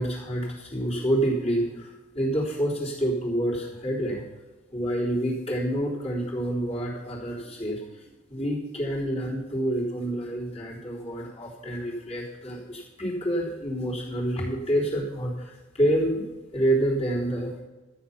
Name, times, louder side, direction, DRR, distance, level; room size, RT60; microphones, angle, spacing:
voice 1, 0.0-4.2 4.7-8.0 8.3-17.6, right 1 dB, 30° left, -6 dB, 3.7 m, -28 dB
13.5 x 9.0 x 5.8 m, 1.1 s
head